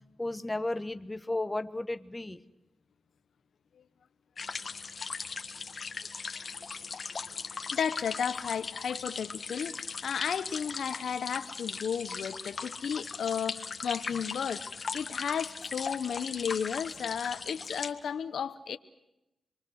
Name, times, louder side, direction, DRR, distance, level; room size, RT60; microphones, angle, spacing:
voice 1, 0.2-2.4, left 2 dB, 20° left, 1.3 m, -33 dB
sound 1, 4.4-17.9, left 5 dB, 55° left, 1.7 m, -39 dB
voice 2, 7.5-14.7 14.9-18.8, left 7 dB, 85° left, 0.9 m, -33 dB
27.0 x 23.0 x 6.4 m
cardioid pair, 70°, 0 cm